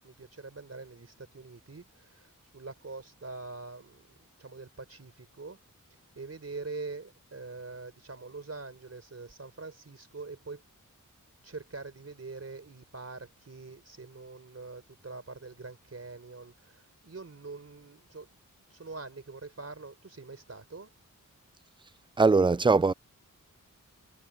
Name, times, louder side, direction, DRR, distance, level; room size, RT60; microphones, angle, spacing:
voice 1, 0.0-5.6 5.9-10.6 11.4-18.4 18.7-20.9, right 3 dB, 50° right, 4.3 m, -44 dB
voice 2, 22.2-22.9, right 4 dB, 15° right, 0.3 m, -21 dB
wide cardioid pair, 95°, 32 cm